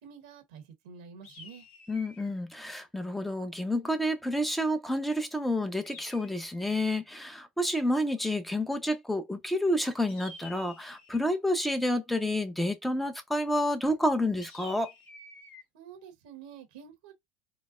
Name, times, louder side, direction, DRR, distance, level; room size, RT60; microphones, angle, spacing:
voice 1, 0.0-1.7 15.7-17.1, right 7 dB, 85° right, 1.0 m, -48 dB
sound 1, 1.2-2.4 5.8-6.9 10.1-11.3 14.4-15.6, left 3 dB, 45° left, 1.6 m, -50 dB
voice 2, 1.9-14.9, left 1 dB, 5° left, 0.8 m, -29 dB
3.9 x 2.1 x 2.5 m
supercardioid pair, 105°, 4 cm